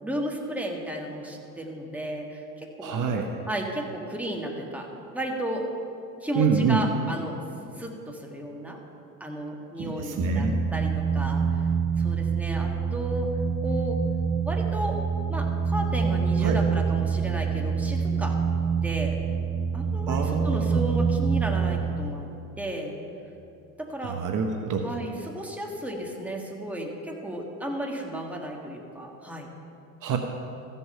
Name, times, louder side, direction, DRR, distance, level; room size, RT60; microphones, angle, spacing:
voice 1, 0.0-3.1 3.5-4.9 5.1-5.7 6.2-7.4 7.8-8.8 9.2-11.7 12.0-13.3 13.6-14.0 14.4-15.0 15.3-18.4 18.8-19.2 19.7-22.3 22.6-23.0 23.8-24.2 24.8-29.5, right 1 dB, 5° right, -1 dB, 1.7 m, -33 dB
voice 2, 2.8-3.4 6.3-6.8 9.8-10.6 16.4-16.6 20.1-20.9 24.0-24.9 30.0-30.2, right 6 dB, 50° right, 3 dB, 1.0 m, -26 dB
sound 1, 10.2-21.8, right 6 dB, 20° left, 2.0 m, -26 dB
15.0 x 5.5 x 5.6 m, 2.7 s
hypercardioid pair, 75°, 41 cm